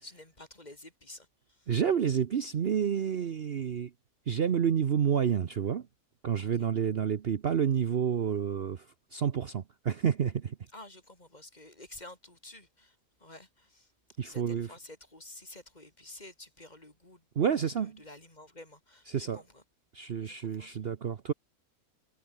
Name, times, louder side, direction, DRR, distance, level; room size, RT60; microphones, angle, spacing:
voice 1, 0.0-1.7 6.4-6.5 10.7-13.9 14.2-19.6 20.2-20.8, left 1 dB, 30° left, 3.9 m, -51 dB
voice 2, 1.7-3.9 4.3-5.9 6.2-10.6 14.2-14.7 17.4-18.0 19.1-19.4 19.9-21.3, right 8 dB, 50° right, 1.0 m, -29 dB
omnidirectional pair, 1.5 m